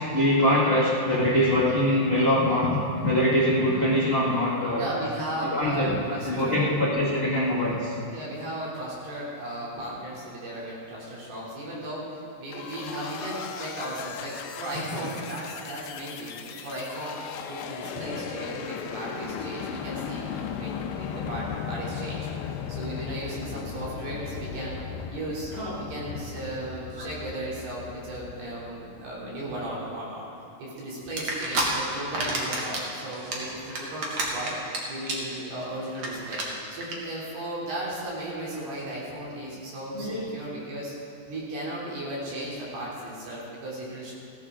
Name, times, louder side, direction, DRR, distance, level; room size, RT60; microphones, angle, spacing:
voice 1, 0.0-4.8 5.5-5.9 6.3-8.0 25.5-25.8 26.1-26.2 27.0-27.1 39.9-40.3, left 1 dB, 65° left, -8 dB, 0.5 m, -23 dB
voice 2, 4.7-6.6 8.1-12.1 12.4-17.1 17.5-24.8 25.1-25.5 25.8-30.3 30.6-34.5 34.9-36.4 36.7-40.9 41.3-44.1, right 1 dB, 70° right, -6 dB, 4.9 m, -36 dB
sound 1, 12.5-29.1, left 7 dB, 90° left, 2.7 m, -37 dB
sound 2, 31.2-31.6 32.0-32.8 33.1-34.8 35.0-35.3 35.6-35.7 35.9-36.1 36.3-36.4 36.8-36.9, right 2 dB, 50° right, 1.6 m, -28 dB
16.0 x 13.0 x 3.7 m, 2.7 s
omnidirectional pair, 4.7 m